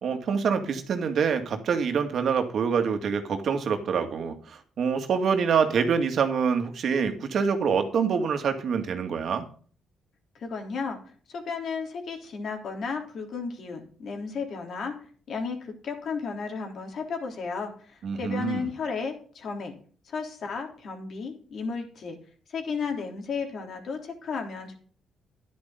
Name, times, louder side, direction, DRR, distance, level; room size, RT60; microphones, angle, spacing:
voice 1, 0.0-9.5 18.0-18.7, right 6 dB, 60° right, 7 dB, 2.2 m, -26 dB
voice 2, 10.4-11.0 11.3-15.0 15.3-19.7 20.1-22.2 22.5-24.7, left 5 dB, 60° left, 3 dB, 3.5 m, -33 dB
11.0 x 10.5 x 3.9 m, 0.43 s
cardioid pair, 90°, 0 cm